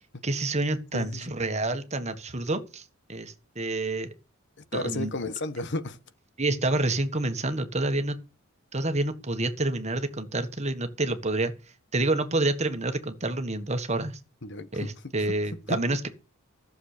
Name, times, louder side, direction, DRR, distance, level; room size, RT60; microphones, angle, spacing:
voice 1, 0.2-2.8 3.1-4.1 4.7-5.1 6.4-8.2 8.7-11.5 11.9-14.2 14.7-16.1, right 2 dB, 30° right, 1.5 m, -28 dB
voice 2, 0.9-1.3 4.7-6.0 14.4-14.9 15.7-15.8, left 2 dB, 55° left, 1.2 m, -33 dB
14.5 x 7.3 x 6.7 m
head